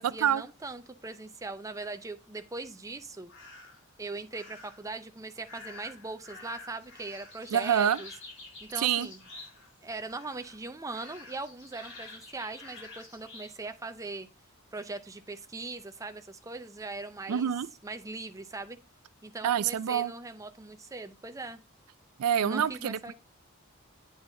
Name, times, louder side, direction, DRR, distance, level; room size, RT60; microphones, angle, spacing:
voice 1, 0.0-3.3 4.0-8.1 8.6-9.2 9.8-14.3 14.7-17.5 17.8-18.8 19.2-21.6 22.4-23.1, right 3 dB, 15° right, 0.5 m, -40 dB
sound 1, 3.3-3.8 4.3-4.9 5.4-9.8 10.0-10.6 10.9-13.5, left 3 dB, 55° left, 3.1 m, -49 dB
voice 2, 7.5-8.0 8.8-9.1 17.3-17.7 19.4-20.1 22.2-23.0, right 9 dB, 85° right, 0.4 m, -26 dB
8.9 x 4.0 x 3.8 m
head